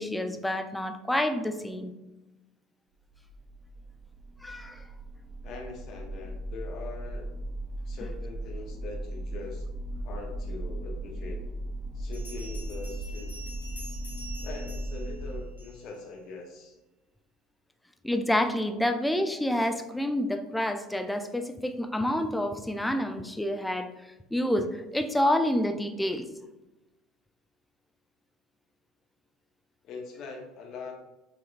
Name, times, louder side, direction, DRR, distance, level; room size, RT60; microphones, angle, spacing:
voice 1, 0.0-1.9 4.4-4.8 18.0-23.9 24.3-26.3, left 1 dB, 5° left, 7 dB, 0.4 m, -28 dB
sound 1, 3.1-15.4, right 1 dB, 50° right, 0.5 m, -37 dB
voice 2, 5.4-7.4 7.9-9.6 10.0-11.4 11.9-13.3 14.4-16.7 29.8-30.9, left 4 dB, 50° left, 1 dB, 0.8 m, -42 dB
Bell, 12.1-16.0, right 1 dB, 85° left, 1.0 m, -47 dB
5.0 x 2.9 x 2.5 m, 1.0 s
figure-of-eight pair, 70°, 0 cm